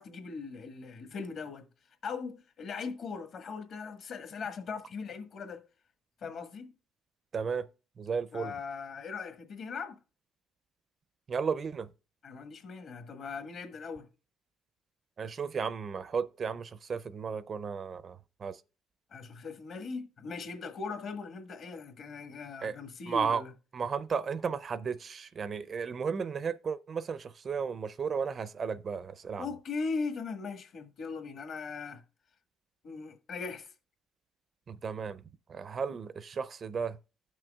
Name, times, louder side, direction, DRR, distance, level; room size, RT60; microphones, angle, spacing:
voice 1, 0.0-1.7 2.0-5.6 6.2-6.7 8.3-10.0 12.2-14.1 19.1-23.5 29.4-32.0 32.8-33.7, left 4 dB, 50° left, 1.4 m, -39 dB
voice 2, 7.3-7.7 8.0-8.5 11.3-11.9 15.2-18.2 18.4-18.6 22.6-22.8 23.1-23.4 23.7-29.5 34.7-35.2 35.5-37.0, right 6 dB, 35° right, 0.4 m, -34 dB
15.5 x 6.1 x 2.3 m
cardioid pair, 130°, 0 cm